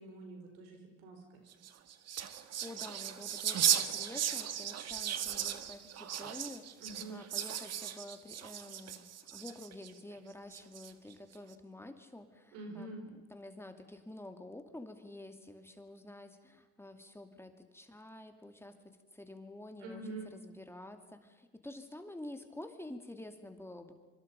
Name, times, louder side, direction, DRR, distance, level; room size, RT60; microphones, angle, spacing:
voice 1, 0.0-1.4 6.8-7.2 12.5-13.1 19.8-20.3, right 2 dB, 85° right, 4 dB, 4.6 m, -46 dB
sound 1, 1.5-9.9 10.5-11.1, right 10 dB, 55° right, 1.6 m, -36 dB
voice 2, 2.3-6.7 7.1-12.9 13.3-18.8 19.1-20.0 20.3-23.9, left 1 dB, 10° left, 6 dB, 2.5 m, -49 dB
25.5 x 24.5 x 5.3 m, 1.3 s
supercardioid pair, 70°, 30 cm